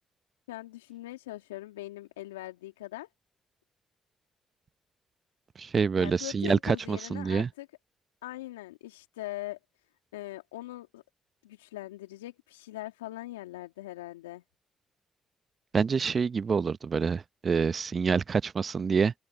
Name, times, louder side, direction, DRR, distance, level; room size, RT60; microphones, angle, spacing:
voice 1, 0.5-3.1 6.0-7.7 8.2-9.6 10.1-11.0 11.4-14.4, left 16 dB, 85° left, 2.6 m, -41 dB
voice 2, 5.6-7.5 15.7-19.1, right 5 dB, 45° right, 0.9 m, -27 dB
open air
hypercardioid pair, 45°, 0 cm